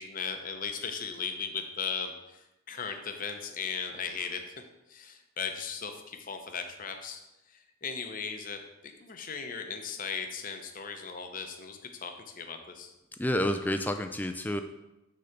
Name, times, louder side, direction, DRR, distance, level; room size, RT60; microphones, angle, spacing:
voice 1, 0.0-4.4 4.9-7.2 7.5-12.9, left 6 dB, 40° left, 5 dB, 0.7 m, -37 dB
voice 2, 13.2-14.6, left 1 dB, 10° left, 7 dB, 0.3 m, -29 dB
6.4 x 3.9 x 5.8 m, 0.97 s
head